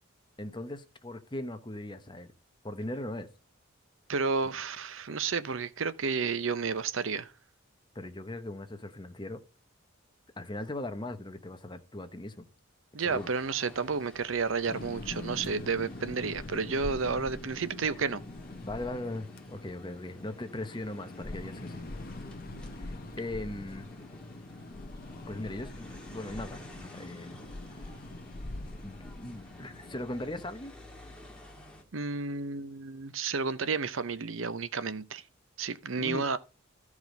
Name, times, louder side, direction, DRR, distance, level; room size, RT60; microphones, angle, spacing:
voice 1, 0.4-2.3 2.6-3.3 7.9-9.4 10.4-12.5 13.0-13.3 18.6-21.8 22.8-23.9 25.2-27.4 28.8-30.7 36.0-36.4, left 1 dB, 20° left, 0.9 m, -39 dB
voice 2, 4.1-7.3 12.9-18.2 31.9-35.2 35.6-36.4, right 5 dB, 65° right, 0.7 m, -31 dB
sound 1, 13.1-31.8, left 1 dB, 5° left, 1.9 m, -52 dB
sound 2, 14.7-30.0, left 2 dB, 45° left, 0.9 m, -43 dB
14.0 x 4.9 x 5.2 m
head